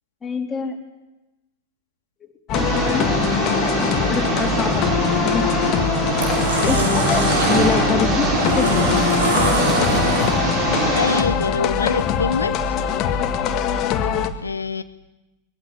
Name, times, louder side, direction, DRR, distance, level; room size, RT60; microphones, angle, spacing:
voice 1, 0.2-0.8 2.5-3.2 3.6-5.7 6.6-9.0, left 4 dB, 15° left, 1 dB, 3.7 m, -26 dB
sound 1, 2.5-14.3, left 8 dB, 35° left, 1.7 m, -22 dB
Engine, 2.5-11.2, right 3 dB, 35° right, 4.9 m, -23 dB
sound 2, 5.2-5.5 6.0-10.6, right 3 dB, 60° right, 5.6 m, -25 dB
voice 2, 10.7-12.5 14.4-14.8, left 4 dB, 75° left, 12 dB, 0.7 m, -24 dB
22.0 x 15.5 x 9.7 m, 1.0 s
figure-of-eight pair, 90°, 0 cm